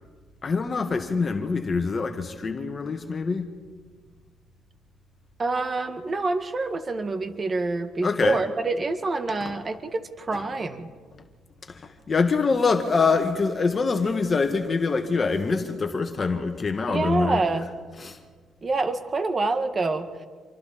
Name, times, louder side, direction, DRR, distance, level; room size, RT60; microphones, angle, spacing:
voice 1, 0.4-3.5 8.0-8.4 9.5-9.6 11.7-17.4 18.0-18.2, left 4 dB, 35° left, 5 dB, 1.8 m, -25 dB
voice 2, 5.4-10.9 16.9-17.7 18.6-20.1, right 3 dB, 35° right, 8 dB, 1.9 m, -26 dB
27.5 x 24.5 x 4.3 m, 1.5 s
cardioid pair, 90°, 0 cm